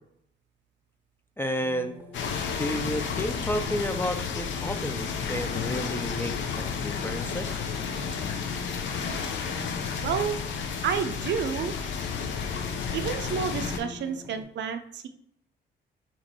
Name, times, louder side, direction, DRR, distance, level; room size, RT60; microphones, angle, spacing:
voice 1, 1.4-2.0 2.6-7.6, equal, 10° left, 6 dB, 0.4 m, -31 dB
sound 1, 1.6-14.4, left 2 dB, 10° right, 0.7 m, -46 dB
sound 2, 2.1-13.8, left 6 dB, 70° left, 0.6 m, -32 dB
voice 2, 10.0-10.4 10.8-11.8 12.9-15.1, right 7 dB, 65° right, 8 dB, 0.5 m, -30 dB
2.9 x 2.5 x 4.3 m, 0.69 s
cardioid pair, 90°, 20 cm